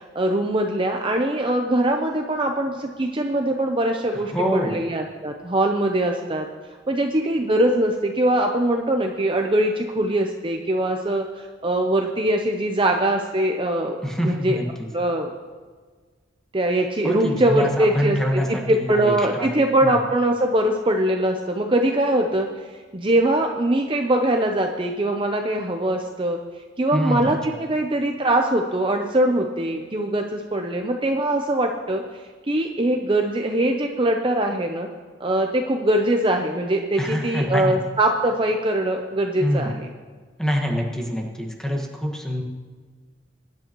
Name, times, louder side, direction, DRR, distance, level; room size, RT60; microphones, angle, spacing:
voice 1, 0.0-6.5 6.9-14.0 14.2-14.6 14.9-15.3 16.5-22.5 22.9-26.4 26.8-32.0 32.5-34.9 35.2-39.9, right 1 dB, 30° right, 3 dB, 0.6 m, -22 dB
voice 2, 4.1-4.8 14.0-14.9 17.0-19.5 19.8-20.0 26.9-27.3 37.0-37.8 39.4-39.8 40.4-42.4, equal, 5° left, 0 dB, 1.6 m, -25 dB
22.5 x 10.5 x 3.0 m, 1.5 s
head